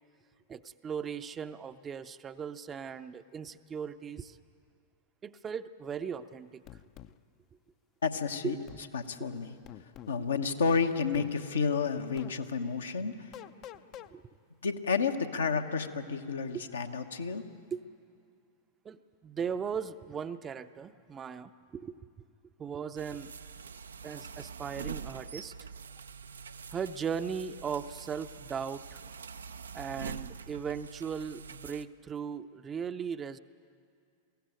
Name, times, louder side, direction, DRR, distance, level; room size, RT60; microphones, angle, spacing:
voice 1, 0.5-4.4 5.2-6.6 8.4-8.6 14.1-14.2 16.5-16.6 17.7-17.8 18.8-22.1 22.6-23.3 24.0-25.5 26.7-29.0 29.7-33.4, right 7 dB, 25° right, 11 dB, 0.6 m, -38 dB
sound 1, 6.7-7.1 8.7-8.9 9.7-10.2 11.1-11.3 12.2-12.4 13.3-14.1, left 12 dB, 40° left, 0.6 m, -47 dB
voice 2, 8.0-8.6 8.9-9.5 10.1-13.2 14.6-17.5, left 5 dB, 70° left, 6 dB, 1.1 m, -31 dB
sound 2, 23.0-31.9, right 6 dB, 70° right, 0.5 m, -44 dB
22.0 x 15.5 x 9.1 m, 2.4 s
figure-of-eight pair, 90°, 0 cm